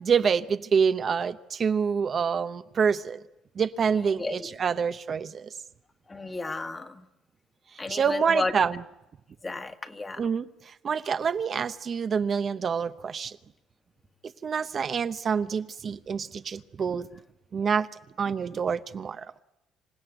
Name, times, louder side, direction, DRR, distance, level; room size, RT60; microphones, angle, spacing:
voice 1, 0.0-3.2 3.6-5.5 7.7-8.8 10.2-13.4 14.2-17.1 17.5-17.9 18.2-19.3, right 6 dB, 40° right, 10 dB, 0.8 m, -27 dB
voice 2, 3.9-4.5 6.1-7.0 7.8-8.5 9.4-10.2, left 3 dB, 20° left, 7 dB, 1.6 m, -33 dB
27.5 x 16.0 x 9.1 m, 0.94 s
cardioid pair, 110°, 0 cm